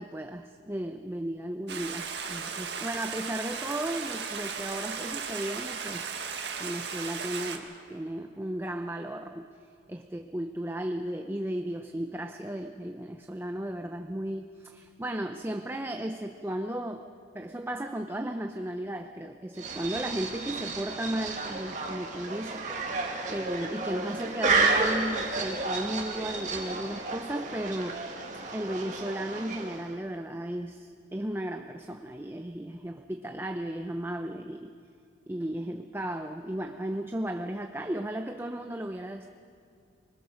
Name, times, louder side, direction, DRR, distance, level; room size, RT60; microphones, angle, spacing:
voice 1, 0.0-6.0 6.6-9.5 9.9-17.1 17.3-22.6 23.3-28.0 28.5-34.7 35.3-39.3, right 1 dB, 15° right, 6 dB, 0.6 m, -35 dB
Stream, 1.7-7.6, right 6 dB, 70° right, 1.8 m, -36 dB
sound 1, 19.6-30.0, right 3 dB, 40° right, 2.1 m, -31 dB
25.0 x 21.0 x 6.4 m, 2.4 s
head